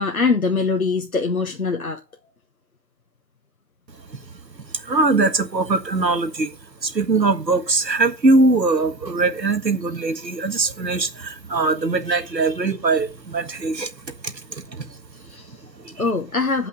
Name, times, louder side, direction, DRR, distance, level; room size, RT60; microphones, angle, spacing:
voice 1, 0.0-2.0 15.2-15.6 16.0-16.7, left 4 dB, 60° left, 1.1 m, -23 dB
voice 2, 4.7-6.5 6.8-14.9 15.8-16.0, right 3 dB, 85° right, 1.8 m, -21 dB
8.7 x 5.4 x 6.7 m
figure-of-eight pair, 175°, 50 cm